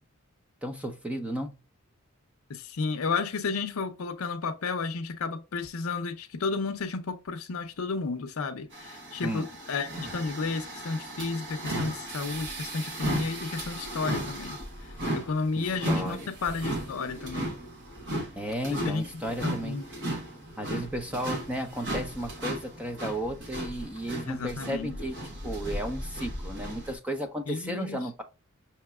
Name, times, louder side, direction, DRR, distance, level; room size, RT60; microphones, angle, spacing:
voice 1, 0.6-1.5 9.2-9.5 15.6-16.2 18.3-19.8 20.6-25.1 25.4-28.2, equal, 5° right, 0.5 m, -34 dB
voice 2, 2.5-17.5 18.7-19.0 19.4-19.8 24.3-25.0 27.5-28.2, left 4 dB, 70° left, 0.6 m, -32 dB
sound 1, 8.7-26.9, right 1 dB, 60° right, 1.2 m, -36 dB
5.7 x 2.9 x 2.3 m
head